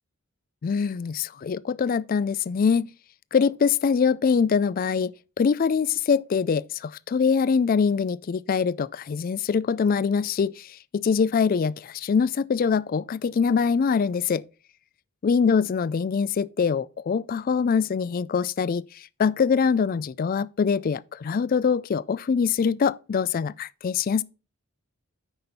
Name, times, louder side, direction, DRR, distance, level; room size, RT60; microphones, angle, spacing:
voice 1, 0.6-2.9 3.3-5.1 5.4-14.4 15.2-18.8 19.2-24.2, left 6 dB, 40° left, 0.3 m, -23 dB
8.9 x 6.0 x 4.2 m
head